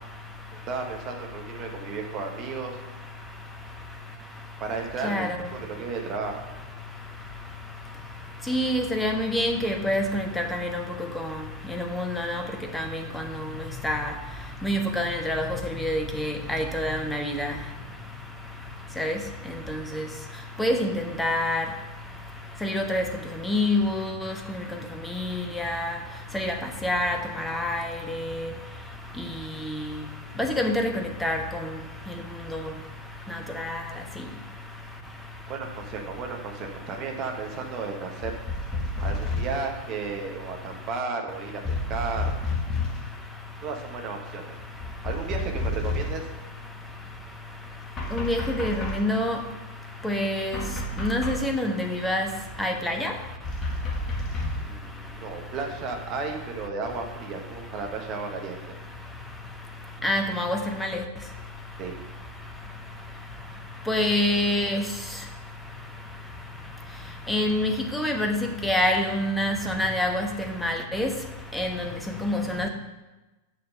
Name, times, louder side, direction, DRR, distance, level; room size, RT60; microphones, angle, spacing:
voice 1, 0.7-2.8 4.6-5.3 5.6-6.4 35.5-38.3 39.0-42.3 43.6-44.5 45.0-46.3 54.6-58.6 61.8-61.9, right 4 dB, 35° right, 2 dB, 1.4 m, -33 dB
voice 2, 5.0-5.4 8.5-10.8 11.2-11.3 11.7-12.4 12.7-12.9 13.1-13.2 13.8-14.1 14.6-15.4 15.8-17.5 19.0-19.2 20.0-20.1 20.6-21.6 22.6-23.1 23.4-24.3 25.5-25.9 26.3-26.5 26.8-27.2 27.4-28.2 30.4-30.9 31.2-31.4 32.5-32.7 33.6-33.8 48.1-49.4 50.0-50.6 51.0-52.3 52.6-53.1 60.0-60.9 63.9-64.8 67.3-70.3 70.6-71.1 71.5-71.7 72.2-72.7, left 1 dB, 5° left, 3 dB, 1.1 m, -26 dB
sound 1, 38.2-39.7 41.6-43.1 44.8-46.3 48.0-49.2 50.5-51.6 53.4-54.8, left 2 dB, 25° left, 1.5 m, -30 dB
6.8 x 6.6 x 5.5 m, 1.1 s
figure-of-eight pair, 90°, 0 cm